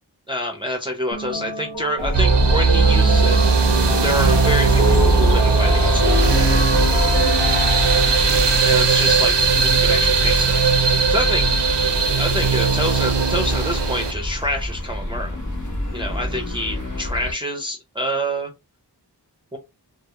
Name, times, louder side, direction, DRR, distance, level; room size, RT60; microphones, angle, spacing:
voice 1, 0.3-3.4 4.0-6.1 8.6-11.5 12.2-15.4 15.9-18.5 19.5-19.6, equal, 10° right, 2 dB, 0.5 m, -27 dB
sound 1, 1.1-8.4, left 2 dB, 85° left, 0.8 m, -26 dB
sound 2, 2.0-17.3, left 1 dB, 45° left, 0.8 m, -25 dB
sound 3, 2.1-14.1, right 5 dB, 85° right, 0.5 m, -18 dB
2.2 x 2.0 x 2.9 m, 0.24 s
wide cardioid pair, 45°, 42 cm